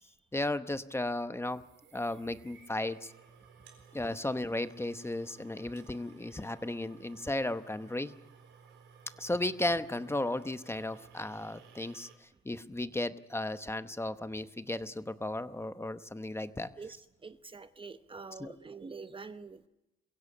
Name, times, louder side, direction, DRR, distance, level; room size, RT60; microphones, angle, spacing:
voice 1, 0.3-1.6 1.9-3.1 3.9-8.1 9.2-16.7 18.4-18.5, left 1 dB, 10° left, 0.9 m, -35 dB
sound 1, 1.4-12.2, right 6 dB, 85° right, 4.2 m, -57 dB
voice 2, 17.2-19.7, right 4 dB, 25° right, 0.8 m, -46 dB
22.5 x 16.5 x 8.6 m
cardioid pair, 90°, 20 cm